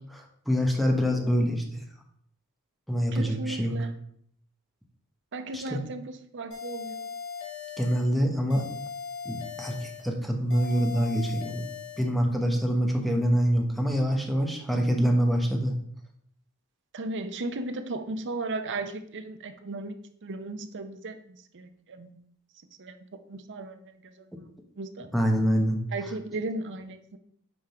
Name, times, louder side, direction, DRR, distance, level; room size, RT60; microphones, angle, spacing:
voice 1, 0.1-1.8 2.9-3.7 5.5-5.8 7.8-8.7 9.2-11.7 12.0-15.8 25.1-25.8, equal, ahead, 2 dB, 1.1 m, -25 dB
voice 2, 3.1-4.0 5.3-7.1 16.9-20.0 20.2-22.2 22.8-24.3 24.8-25.1 25.9-27.2, right 2 dB, 55° right, 8 dB, 0.7 m, -36 dB
sound 1, 6.5-8.1 8.5-10.1 10.5-12.1, left 6 dB, 65° left, 2.2 m, -39 dB
9.4 x 3.7 x 4.4 m, 0.66 s
head